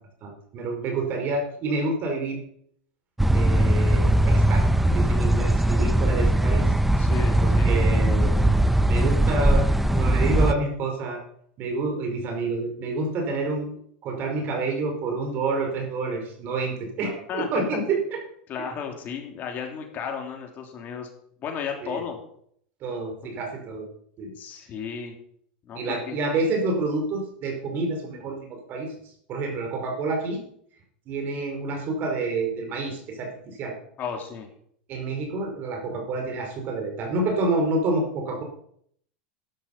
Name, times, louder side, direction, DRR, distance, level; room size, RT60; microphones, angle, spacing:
voice 1, 0.2-2.4 3.3-6.7 7.4-8.4 8.9-9.7 9.9-11.2 11.6-13.7 14.0-18.0 21.8-22.0 22.8-23.9 24.2-24.3 25.7-28.9 29.3-30.4 31.1-33.8 34.9-38.4, right 3 dB, 45° right, 3 dB, 4.9 m, -28 dB
sound 1, 3.2-10.5, right 1 dB, 5° right, 0.6 m, -20 dB
voice 2, 7.0-7.8 17.3-17.5 18.5-21.1 21.4-22.2 24.4-25.1 25.7-26.2 34.0-34.5, left 7 dB, 40° left, 3 dB, 3.1 m, -34 dB
13.0 x 10.5 x 5.5 m, 0.66 s
supercardioid pair, 120°, 5 cm